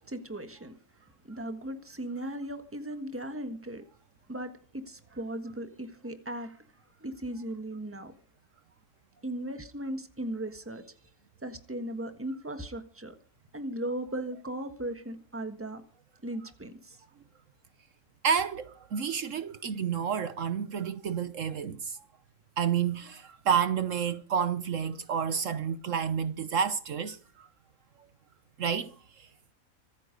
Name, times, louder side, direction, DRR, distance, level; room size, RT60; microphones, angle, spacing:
voice 1, 0.1-0.7 1.3-3.8 4.3-6.6 7.0-8.1 9.2-10.9 11.4-13.1 13.5-15.8 16.2-17.0, right 1 dB, 10° right, 1.5 m, -37 dB
voice 2, 18.2-22.0 22.6-27.5 28.6-29.3, right 7 dB, 65° right, 1.2 m, -30 dB
25.0 x 9.1 x 5.3 m
omnidirectional pair, 1.5 m